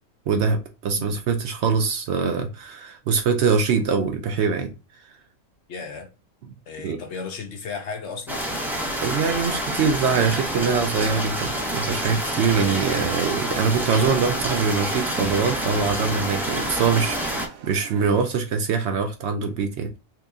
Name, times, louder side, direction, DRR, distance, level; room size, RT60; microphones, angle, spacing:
voice 1, 0.3-4.7 6.8-7.0 9.0-19.9, right 5 dB, 65° right, 0.7 m, -23 dB
voice 2, 0.9-1.2 5.7-6.1 6.7-8.5, left 5 dB, 65° left, 0.9 m, -35 dB
sound 1, 8.3-17.5, equal, 5° right, 0.4 m, -27 dB
sound 2, 9.8-18.3, right 7 dB, 85° right, 1.0 m, -43 dB
3.0 x 2.8 x 3.5 m
omnidirectional pair, 1.4 m